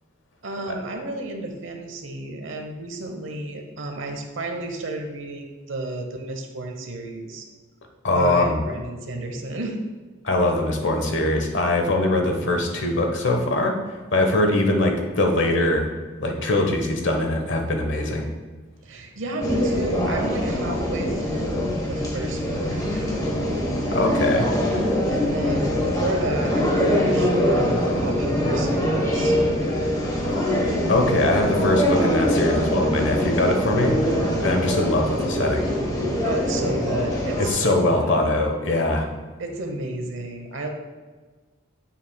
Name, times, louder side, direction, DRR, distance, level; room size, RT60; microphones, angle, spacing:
voice 1, 0.4-7.5 8.1-9.8 18.8-23.2 25.1-29.3 36.2-38.2 39.4-40.7, right 2 dB, 75° right, 3 dB, 0.9 m, -32 dB
voice 2, 8.0-8.6 10.2-13.7 14.1-15.9 16.2-18.3 23.9-24.5 30.3-30.5 30.9-34.0 34.4-35.6 37.4-39.1, left 2 dB, 65° left, 3 dB, 1.1 m, -22 dB
sound 1, 19.4-37.5, equal, 20° left, 1.2 m, -23 dB
9.1 x 7.3 x 2.3 m, 1.4 s
head